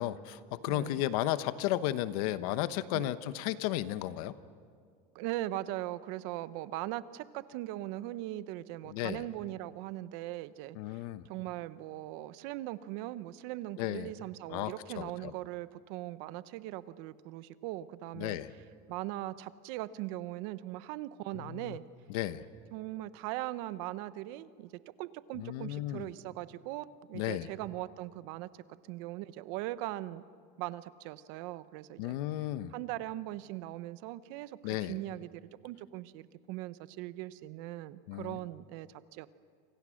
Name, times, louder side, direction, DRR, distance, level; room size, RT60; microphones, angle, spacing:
voice 1, 0.0-4.3 8.9-9.2 10.7-11.2 13.8-14.1 14.5-15.3 18.1-18.5 21.3-21.8 22.1-22.4 25.4-26.1 27.1-27.5 32.0-32.7 34.6-35.0 38.1-38.4, left 14 dB, 65° left, 13 dB, 1.1 m, -34 dB
voice 2, 0.7-1.0 2.9-3.1 5.1-18.4 18.9-21.8 22.7-24.7 25.0-28.5 28.9-30.2 30.6-32.2 32.7-39.3, right 16 dB, 55° right, 15 dB, 0.9 m, -40 dB
29.0 x 26.0 x 6.5 m, 2.1 s
supercardioid pair, 160°, 20 cm